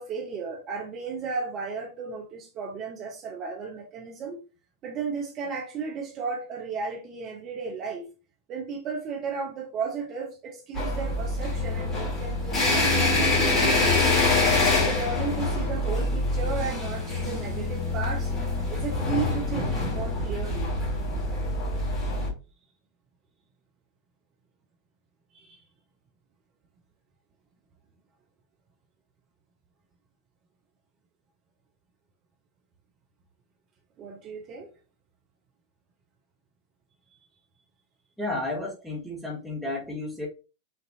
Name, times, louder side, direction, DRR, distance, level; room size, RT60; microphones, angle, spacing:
voice 1, 0.0-4.4 4.8-8.1 8.5-14.2 14.8-20.7 25.3-25.6 34.0-34.7, right 5 dB, 35° right, 1.0 m, -34 dB
sound 1, 10.7-22.3, left 2 dB, 25° left, 2.1 m, -25 dB
voice 2, 38.2-40.3, left 2 dB, ahead, 1.6 m, -32 dB
6.0 x 2.9 x 2.7 m
figure-of-eight pair, 90°, 0 cm